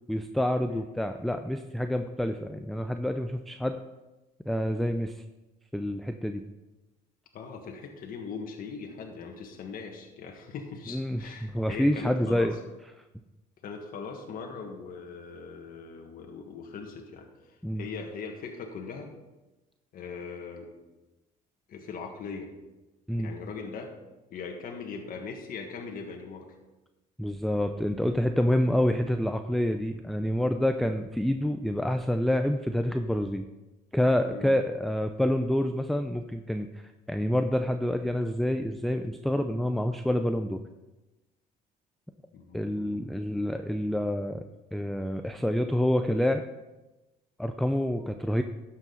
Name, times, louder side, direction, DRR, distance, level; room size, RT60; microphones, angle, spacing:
voice 1, 0.1-3.8 4.5-5.1 5.7-6.4 10.9-12.5 17.6-17.8 23.1-23.3 27.2-33.5 33.9-36.7 37.1-40.6 42.5-44.4 44.7-46.4 47.4-48.4, left 1 dB, ahead, 6 dB, 0.4 m, -27 dB
voice 2, 7.3-12.6 13.6-17.3 17.8-19.1 19.9-20.7 21.7-22.5 23.2-23.9 24.3-26.6 34.3-34.6 42.3-43.2, left 5 dB, 60° left, 2 dB, 1.6 m, -40 dB
12.0 x 7.5 x 4.0 m, 1.1 s
cardioid pair, 110°, 17 cm